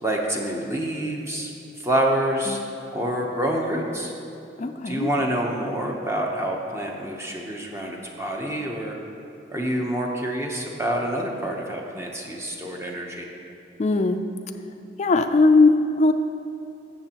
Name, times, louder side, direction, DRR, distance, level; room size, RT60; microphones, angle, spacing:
voice 1, 0.0-1.5 1.8-2.6 2.9-4.1 4.9-9.0 9.5-13.3, right 1 dB, 15° right, 0 dB, 0.8 m, -27 dB
voice 2, 2.5-2.8 4.6-5.1 13.8-14.2 15.0-16.1, left 3 dB, 40° left, 7 dB, 0.4 m, -19 dB
14.5 x 6.8 x 2.9 m, 2.8 s
head